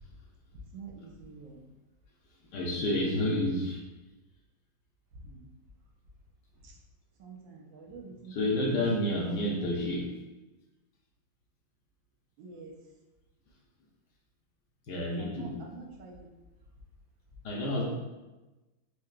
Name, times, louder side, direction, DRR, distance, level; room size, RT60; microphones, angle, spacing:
voice 1, 0.7-1.6 5.2-5.4 6.6-6.7 7.2-8.6 12.4-12.7 15.2-16.3, right 4 dB, 80° right, 0 dB, 1.4 m, -47 dB
voice 2, 2.5-3.8 8.3-10.1 14.9-15.6 17.4-17.9, left 1 dB, 70° left, -3 dB, 1.2 m, -29 dB
4.6 x 2.7 x 2.3 m, 1.1 s
omnidirectional pair, 2.1 m